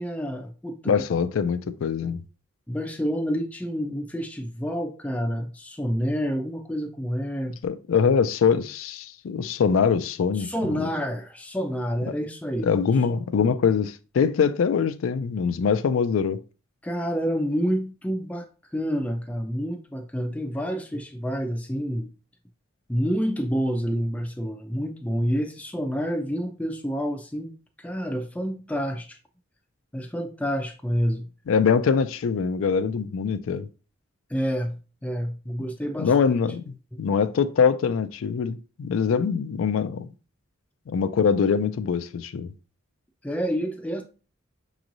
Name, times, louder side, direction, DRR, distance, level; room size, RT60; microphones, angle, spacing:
voice 1, 0.0-1.0 2.7-7.6 10.3-12.7 16.8-18.5 18.7-22.1 22.9-29.2 29.9-31.3 34.3-34.8 35.0-36.1 43.2-44.0, equal, 5° left, 0.4 m, -28 dB
voice 2, 0.9-2.2 7.6-10.9 12.6-16.4 31.5-33.7 36.0-40.1 40.9-42.5, left 6 dB, 75° left, 0.4 m, -23 dB
6.1 x 3.0 x 2.5 m
head